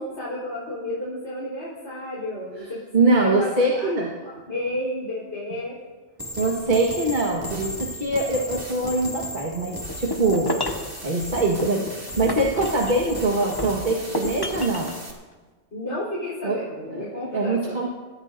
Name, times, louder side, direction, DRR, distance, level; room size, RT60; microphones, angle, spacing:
voice 1, 0.0-3.9 4.5-5.8 15.7-17.8, left 1 dB, 70° left, -8 dB, 4.6 m, -32 dB
voice 2, 2.9-4.1 6.4-10.5 11.0-15.0 16.4-16.6 16.9-17.9, right 2 dB, 40° right, -1 dB, 1.7 m, -23 dB
sound 1, 6.2-15.1, equal, 15° right, 2.3 m, -35 dB
sound 2, 9.9-10.9 11.6-13.1 13.6-15.0, left 1 dB, 20° left, 1.2 m, -30 dB
27.0 x 14.5 x 2.7 m, 1.3 s
omnidirectional pair, 1.2 m